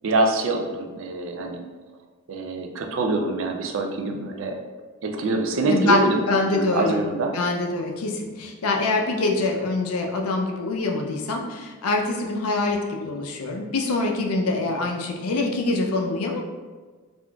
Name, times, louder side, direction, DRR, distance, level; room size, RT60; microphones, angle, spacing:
voice 1, 0.0-1.6 2.3-4.5 5.0-6.2 6.5-7.3, right 2 dB, 60° right, 3 dB, 0.4 m, -25 dB
voice 2, 5.7-7.0 7.3-16.4, left 2 dB, 80° left, 2 dB, 0.4 m, -24 dB
3.7 x 2.4 x 2.2 m, 1.4 s
head